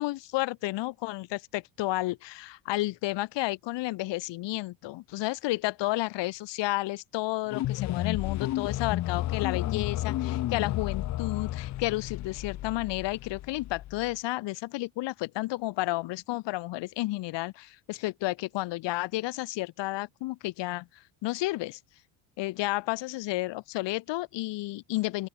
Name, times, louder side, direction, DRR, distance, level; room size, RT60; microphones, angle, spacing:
voice 1, 0.0-20.9 21.2-21.8 22.4-25.3, left 19 dB, 60° left, 0.9 m, -31 dB
sound 1, 7.5-14.1, left 14 dB, 40° left, 0.5 m, -32 dB
open air
cardioid pair, 145°, 48 cm